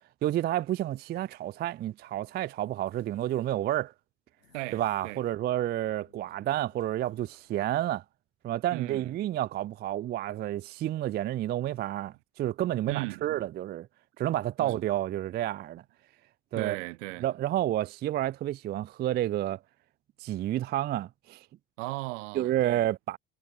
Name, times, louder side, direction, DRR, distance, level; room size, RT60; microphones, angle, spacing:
voice 1, 0.2-3.9 4.7-8.0 8.4-13.9 14.2-15.8 16.5-16.8 17.2-19.6 20.2-21.5 22.3-23.2, right 13 dB, 30° right, 0.3 m, -30 dB
sound 1, 2.0-3.5 4.4-5.5 5.8-7.5, left 6 dB, 85° left, 2.7 m, -63 dB
voice 2, 4.5-5.2 8.7-9.1 12.9-13.5 14.6-14.9 16.5-17.3 21.8-22.9, right 25 dB, 70° right, 1.9 m, -37 dB
figure-of-eight pair, 55°, 38 cm